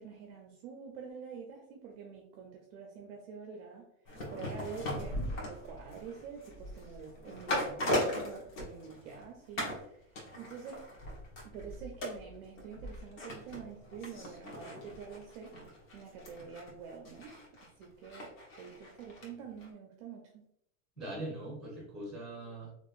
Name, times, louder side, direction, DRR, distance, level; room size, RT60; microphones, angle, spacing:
voice 1, 0.0-3.8 4.3-9.8 10.4-10.9 11.4-15.5 15.9-17.3 17.8-20.4, right 6 dB, 45° right, 1 dB, 0.5 m, -47 dB
sound 1, 4.1-9.2 9.6-9.8 10.2-19.3 19.6-19.7, left 1 dB, 65° left, 1.4 m, -39 dB
voice 2, 21.0-22.7, right 1 dB, ahead, -3 dB, 1.0 m, -41 dB
3.3 x 3.0 x 2.5 m, 0.74 s
supercardioid pair, 165°, 42 cm